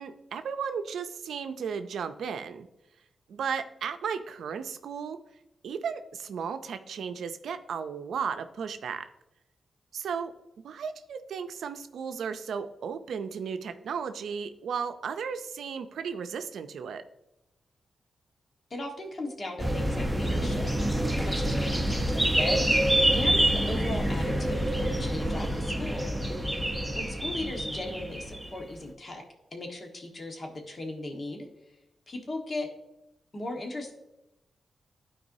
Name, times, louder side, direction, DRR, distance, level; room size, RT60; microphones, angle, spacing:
voice 1, 0.0-2.7 3.3-5.2 5.6-9.1 9.9-10.3 10.6-17.0, right 6 dB, 85° right, 9 dB, 0.5 m, -35 dB
voice 2, 18.7-20.7 21.1-22.8 23.1-26.1 26.9-29.2 29.5-31.5 32.1-32.7 33.3-33.9, left 2 dB, 50° left, 2 dB, 1.5 m, -37 dB
sound 1, 19.6-28.5, right 1 dB, 5° right, 0.9 m, -27 dB
11.5 x 4.7 x 2.7 m, 0.91 s
cardioid pair, 55°, 0 cm